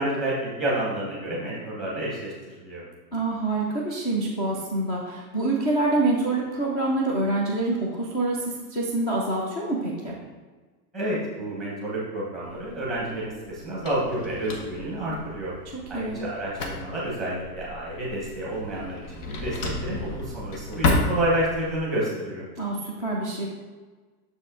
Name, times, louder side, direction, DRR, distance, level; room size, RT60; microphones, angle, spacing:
voice 1, 0.0-2.8 10.9-15.5 15.9-22.5, right 1 dB, ahead, -6 dB, 0.9 m, -29 dB
voice 2, 3.1-10.1 15.7-16.2 22.6-23.5, right 2 dB, 25° left, -3 dB, 0.5 m, -26 dB
Drawer open or close, 12.4-21.8, left 2 dB, 65° left, 1.3 m, -32 dB
6.8 x 5.2 x 3.7 m, 1.3 s
supercardioid pair, 175°, 49 cm